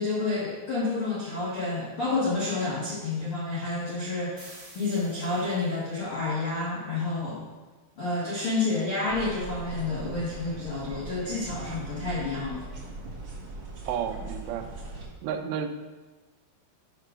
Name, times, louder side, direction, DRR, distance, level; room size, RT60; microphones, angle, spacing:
voice 1, 0.0-7.4 8.0-12.7, left 3 dB, 65° left, -8 dB, 1.3 m, -29 dB
sound 1, 4.4-5.9, right 2 dB, 30° right, 1.7 m, -50 dB
sound 2, 9.1-15.1, right 3 dB, 45° right, 2.6 m, -40 dB
voice 2, 13.9-14.8 15.2-15.7, right 8 dB, 90° right, 7 dB, 2.9 m, -31 dB
8.7 x 3.7 x 6.0 m, 1.3 s
omnidirectional pair, 4.8 m